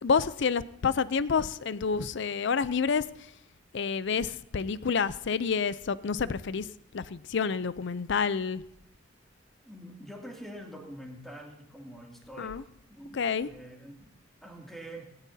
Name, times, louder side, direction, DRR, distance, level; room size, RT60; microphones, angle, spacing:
voice 1, 0.0-3.1 3.7-6.7 6.9-8.6 12.4-12.6 13.1-13.5, left 5 dB, 65° left, 0.5 m, -28 dB
voice 2, 9.6-14.1 14.4-15.1, right 1 dB, ahead, 2.5 m, -45 dB
17.5 x 17.0 x 2.8 m
head